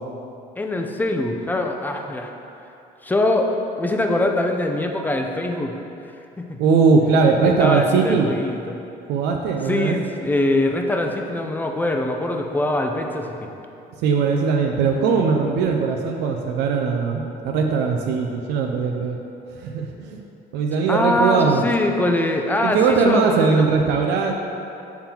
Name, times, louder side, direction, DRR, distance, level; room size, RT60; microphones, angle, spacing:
voice 1, 0.6-2.3 3.0-6.6 7.4-8.8 9.6-13.5 20.9-23.8, left 1 dB, 10° left, 3 dB, 0.5 m, -23 dB
voice 2, 6.6-8.3 9.1-10.0 14.0-19.2 19.5-20.2 20.5-21.6 22.6-24.3, right 5 dB, 90° right, 2 dB, 0.5 m, -20 dB
7.1 x 3.8 x 4.4 m, 2.8 s
cardioid pair, 110°, 17 cm